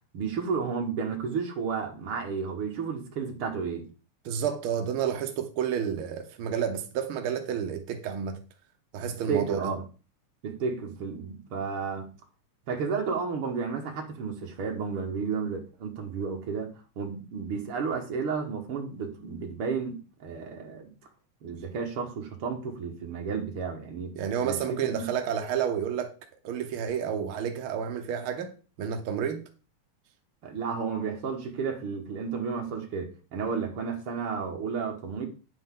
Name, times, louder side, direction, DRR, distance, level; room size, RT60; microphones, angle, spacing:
voice 1, 0.1-3.9 9.3-9.8 10.4-12.1 12.7-20.9 21.4-25.1 30.4-35.3, right 5 dB, 50° right, 2.2 m, -32 dB
voice 2, 4.2-8.4 8.9-9.7 24.1-26.1 26.4-28.5 28.8-29.4, right 8 dB, 70° right, 1.3 m, -30 dB
9.5 x 7.9 x 3.8 m
omnidirectional pair, 3.5 m